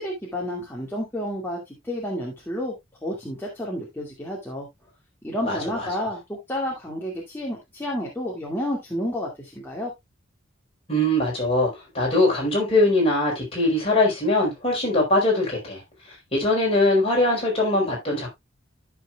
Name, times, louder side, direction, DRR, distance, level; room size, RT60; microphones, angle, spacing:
voice 1, 0.0-2.7 3.0-4.7 5.2-9.9, equal, 10° left, 2.2 m, -30 dB
voice 2, 5.4-5.9 10.9-15.8 16.1-18.3, left 1 dB, 30° left, 4.4 m, -22 dB
13.5 x 6.0 x 2.3 m
head